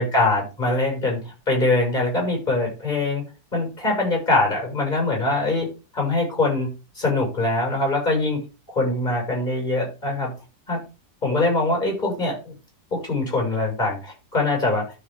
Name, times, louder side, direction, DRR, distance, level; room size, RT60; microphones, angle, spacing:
voice 1, 0.0-3.2 3.5-5.7 5.9-8.4 8.7-10.3 10.7-10.8 11.2-12.5 12.9-14.9, left 2 dB, 25° left, 0 dB, 6.8 m, -23 dB
12.5 x 5.8 x 3.8 m, 0.30 s
omnidirectional pair, 1.9 m